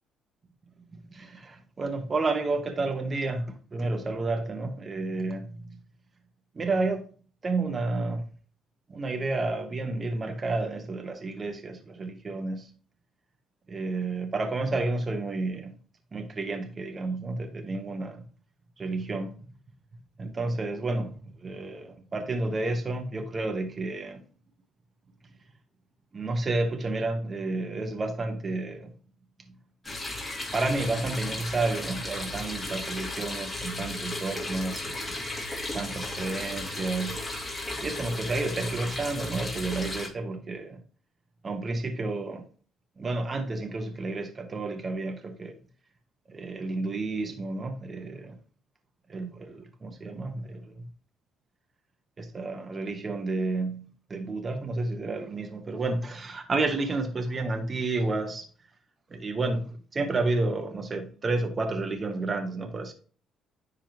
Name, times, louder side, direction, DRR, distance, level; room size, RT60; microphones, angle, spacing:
voice 1, 0.9-5.8 6.5-7.0 7.4-8.2 8.9-12.7 13.7-15.7 16.1-18.2 18.8-19.3 20.2-24.2 26.1-28.9 30.5-35.2 35.7-37.2 37.8-40.8 41.4-42.4 43.0-45.6 46.3-48.4 49.1-50.9 52.2-53.8 54.1-58.5 59.1-62.9, right 3 dB, 35° right, 1.3 m, -31 dB
sound 1, 29.8-40.1, left 2 dB, 20° left, 2.7 m, -35 dB
10.0 x 3.8 x 3.0 m
cardioid pair, 85°, 0 cm